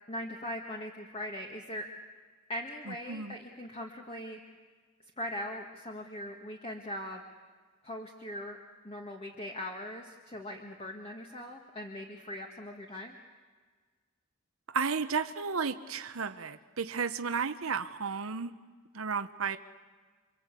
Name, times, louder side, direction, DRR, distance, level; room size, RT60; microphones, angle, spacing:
voice 1, 0.1-1.8 2.5-4.4 5.2-7.2 7.8-8.6 8.8-13.2, left 1 dB, 30° left, 1 dB, 1.8 m, -40 dB
voice 2, 2.9-3.4 14.7-18.5 18.9-19.6, right 5 dB, 75° right, 9 dB, 1.0 m, -33 dB
29.0 x 24.5 x 8.4 m, 1.5 s
head